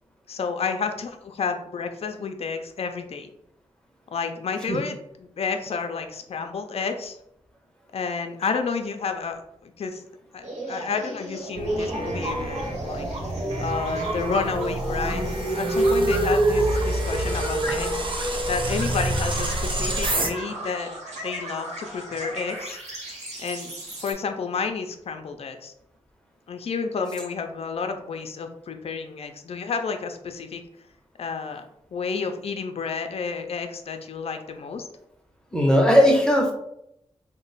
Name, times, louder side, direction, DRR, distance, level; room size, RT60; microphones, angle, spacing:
voice 1, 0.3-3.3 4.1-7.2 7.9-10.0 10.3-13.1 13.6-18.0 18.5-20.9 21.2-22.8 23.4-25.7 26.5-30.6 31.2-34.9, left 5 dB, 65° left, 6 dB, 0.4 m, -30 dB
sound 1, 10.4-24.1, right 1 dB, 85° right, 1.2 m, -36 dB
sound 2, 11.6-20.3, right 1 dB, 45° right, 0.6 m, -26 dB
voice 2, 35.5-36.5, equal, 5° left, 0 dB, 0.7 m, -18 dB
2.9 x 2.1 x 4.0 m, 0.78 s
cardioid pair, 55°, 11 cm